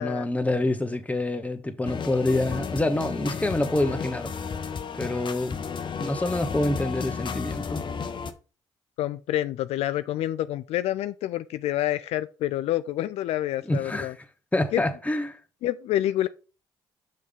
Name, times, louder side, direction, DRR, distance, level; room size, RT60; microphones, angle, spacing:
voice 1, 0.0-4.3 4.9-5.7 6.0-7.8 13.7-14.1 14.5-15.4, left 2 dB, 15° left, 1.2 m, -26 dB
sound 1, 1.8-8.3, left 6 dB, 45° left, 0.9 m, -33 dB
voice 2, 9.0-14.1 14.7-14.8 15.6-16.3, left 13 dB, 75° left, 0.4 m, -27 dB
6.3 x 5.3 x 3.6 m
supercardioid pair, 55°, 11 cm